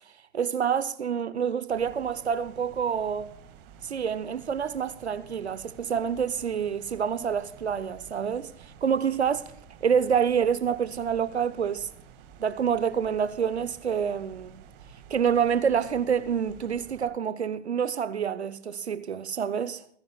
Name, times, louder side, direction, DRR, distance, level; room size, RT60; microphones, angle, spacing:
voice 1, 0.3-3.3 3.8-9.5 9.8-11.9 12.4-14.6 15.1-19.8, right 7 dB, 85° right, 0.7 m, -27 dB
sound 1, 1.7-17.1, right 7 dB, 55° right, 1.9 m, -51 dB
29.0 x 10.5 x 2.3 m
figure-of-eight pair, 85°, 32 cm